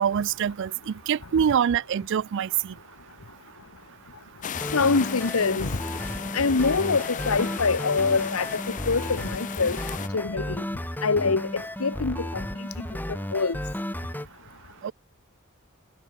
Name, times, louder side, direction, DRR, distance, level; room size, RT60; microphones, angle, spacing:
voice 1, 0.0-2.7 14.8-14.9, right 8 dB, 60° right, 0.3 m, -25 dB
sound 1, 4.4-10.1, left 8 dB, 35° left, 0.5 m, -36 dB
sound 2, 4.5-14.3, left 1 dB, 10° left, 1.2 m, -33 dB
voice 2, 4.7-5.7 6.3-9.8 10.1-10.6 11.0-12.7 13.3-13.6, left 4 dB, 80° left, 1.1 m, -25 dB
head